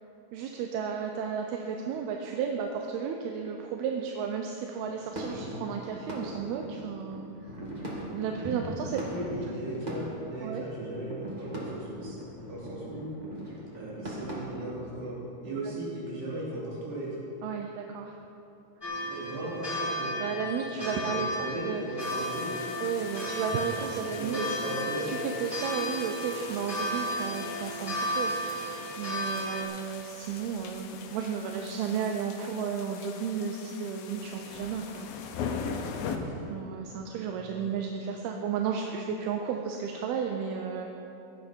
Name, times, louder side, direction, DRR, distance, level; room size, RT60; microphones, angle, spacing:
voice 1, 0.3-7.5 8.1-9.0 10.4-10.6 15.6-15.7 17.4-18.2 20.2-21.8 22.8-24.6 25.1-28.7 29.0-35.1 36.5-40.9, right 7 dB, 85° right, 3 dB, 2.7 m, -33 dB
sound 1, 4.8-14.4, equal, 25° right, 1.0 m, -40 dB
voice 2, 9.1-12.2 12.5-13.1 13.7-17.1 19.1-20.1 20.8-21.2 21.4-22.5 24.2-25.1 36.1-36.4 37.4-37.5, right 1 dB, 65° right, -7 dB, 5.2 m, -37 dB
sound 2, 18.8-29.6, equal, 10° left, 1.5 m, -34 dB
sound 3, 22.0-36.2, left 6 dB, 75° left, 2.7 m, -41 dB
16.0 x 12.5 x 4.5 m, 2.8 s
omnidirectional pair, 4.4 m